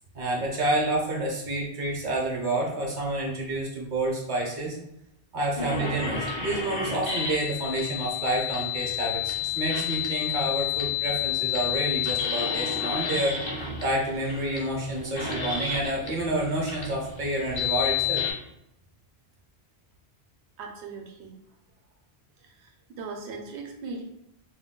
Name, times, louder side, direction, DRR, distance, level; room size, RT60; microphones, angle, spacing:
voice 1, 0.1-4.8 5.3-18.2, right 1 dB, 55° right, -1 dB, 0.8 m, -29 dB
sound 1, 5.6-18.3, left 8 dB, 35° left, 0.5 m, -30 dB
voice 2, 20.6-21.4 22.4-24.0, right 4 dB, 85° right, 1 dB, 0.8 m, -39 dB
2.2 x 2.2 x 3.6 m, 0.81 s
omnidirectional pair, 1.1 m